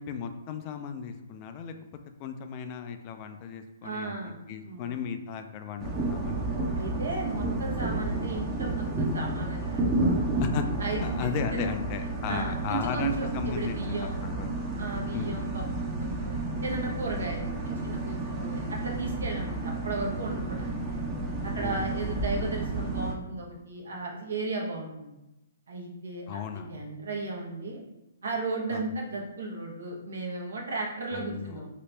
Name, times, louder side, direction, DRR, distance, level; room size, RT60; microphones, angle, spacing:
voice 1, 0.0-1.7 2.2-6.8 10.4-10.6 11.0-14.5 15.1-15.4 21.6-22.2 26.3-26.7 28.7-28.9 31.1-31.6, left 7 dB, 35° left, 7 dB, 0.3 m, -36 dB
voice 2, 3.8-5.0 6.7-10.2 10.8-11.6 12.3-14.2 14.8-16.3 16.6-21.0 21.4-25.2 25.7-26.4 26.7-27.8 28.2-31.7, right 3 dB, 75° right, -1 dB, 1.0 m, -35 dB
sound 1, 5.8-23.1, right 2 dB, 20° right, 0.7 m, -31 dB
2.9 x 2.9 x 3.3 m, 0.94 s
hypercardioid pair, 135°, 0 cm